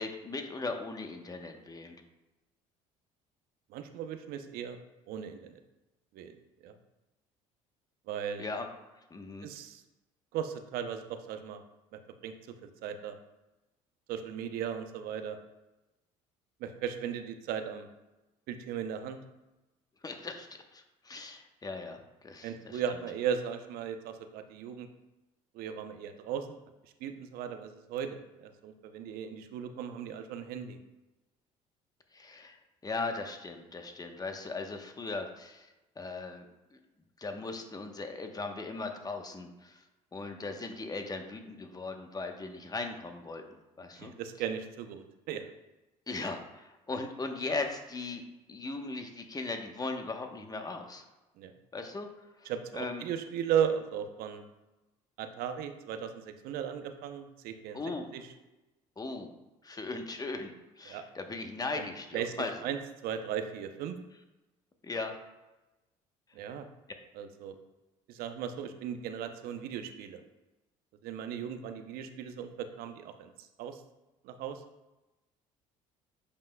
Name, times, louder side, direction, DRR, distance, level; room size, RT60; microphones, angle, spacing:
voice 1, 0.0-2.0 8.4-8.7 9.1-9.5 20.0-20.5 20.7-22.8 32.1-32.6 32.8-35.7 36.0-36.5 37.2-39.8 40.1-44.1 46.1-51.0 51.7-52.1 52.4-53.0 57.7-58.1 59.0-59.3 59.6-62.5 64.8-65.1, left 3 dB, 25° left, 5 dB, 1.1 m, -38 dB
voice 2, 3.7-4.8 5.1-5.6 6.1-6.3 6.6-6.7 8.1-8.5 9.4-9.8 10.3-11.6 12.2-12.3 12.6-13.1 14.1-15.4 16.6-17.9 18.5-19.2 22.4-24.9 25.5-26.6 27.0-30.8 44.0-45.4 51.4-51.5 52.4-54.4 55.2-57.8 58.1-58.3 60.9-61.0 61.8-61.9 62.1-64.0 66.3-66.7 67.1-67.5 68.1-70.2 71.0-73.8 74.2-74.6, right 8 dB, 65° right, 8 dB, 0.7 m, -36 dB
8.3 x 5.2 x 2.3 m, 1.0 s
hypercardioid pair, 65°, 16 cm